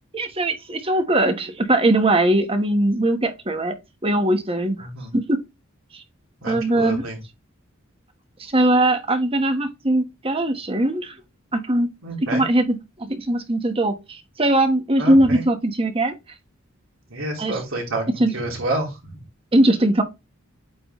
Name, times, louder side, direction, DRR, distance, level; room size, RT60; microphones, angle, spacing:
voice 1, 0.1-3.7 4.0-4.9 5.1-5.4 5.9-6.0 6.5-7.0 8.4-11.1 11.5-11.9 12.2-16.1 17.4-17.6 18.2-18.3 19.5-20.0, right 1 dB, 25° right, 1.2 m, -20 dB
voice 2, 6.4-7.2 12.0-12.4 15.0-15.4 17.1-18.9, right 2 dB, 80° right, 3.2 m, -28 dB
8.6 x 3.9 x 3.1 m
head